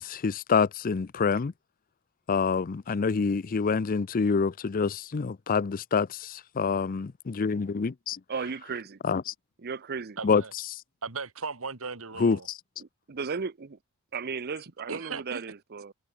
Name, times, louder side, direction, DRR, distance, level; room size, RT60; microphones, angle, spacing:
voice 1, 0.0-1.5 2.3-8.2 9.0-9.3 10.2-10.4 12.2-12.6, left 5 dB, 40° left, 0.4 m, -27 dB
voice 2, 8.3-9.0 9.6-10.2 12.8-13.7 14.1-15.9, right 5 dB, 45° right, 0.7 m, -35 dB
voice 3, 10.2-10.5 11.0-12.5 14.9-15.4, right 4 dB, 70° right, 2.1 m, -37 dB
head